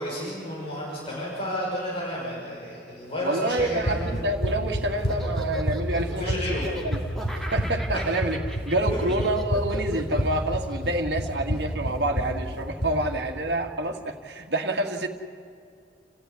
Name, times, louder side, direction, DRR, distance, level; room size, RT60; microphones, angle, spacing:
voice 1, 0.0-4.1 6.1-6.7 7.9-8.0 8.9-9.0, equal, 30° left, -5 dB, 6.1 m, -31 dB
voice 2, 3.2-7.0 7.3-8.4 8.7-15.1, right 1 dB, 65° right, 3 dB, 2.1 m, -28 dB
Run, 3.6-13.0, equal, 60° left, 4.5 m, -29 dB
Laughter, 4.1-12.6, equal, ahead, 2.4 m, -39 dB
29.0 x 14.5 x 9.7 m, 2.4 s
head